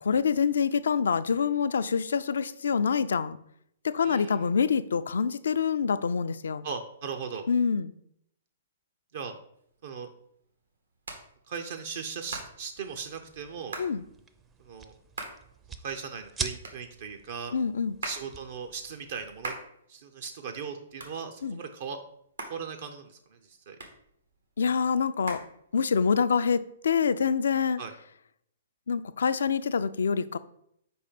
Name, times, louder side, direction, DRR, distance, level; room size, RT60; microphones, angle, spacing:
voice 1, 0.0-3.4 3.8-6.7 7.5-7.9 13.8-14.0 17.5-18.0 21.4-21.6 24.6-25.4 25.7-27.8 28.9-30.4, left 6 dB, 75° left, 0.3 m, -26 dB
voice 2, 4.0-4.4 6.6-7.5 9.1-9.4 9.8-10.1 11.5-13.8 14.6-14.9 15.8-17.5 18.0-19.5 19.9-22.0 22.5-23.8 27.8-27.9, right 6 dB, 60° right, 0.6 m, -38 dB
Hands, 9.5-26.2, right 2 dB, 80° right, 1.3 m, -45 dB
sound 1, 12.8-19.5, right 5 dB, 15° right, 0.5 m, -43 dB
4.9 x 4.3 x 5.1 m
hypercardioid pair, 125°, 0 cm